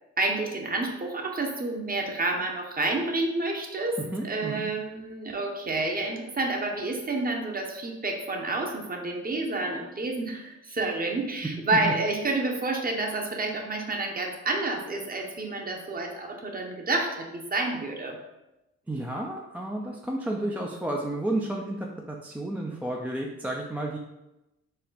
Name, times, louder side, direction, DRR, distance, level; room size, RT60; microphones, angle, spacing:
voice 1, 0.2-18.2, right 2 dB, 25° right, 2 dB, 0.9 m, -29 dB
voice 2, 4.1-4.7 18.9-24.0, right 1 dB, 5° right, 0 dB, 0.4 m, -32 dB
4.2 x 2.1 x 4.0 m, 0.95 s
supercardioid pair, 70°, 34 cm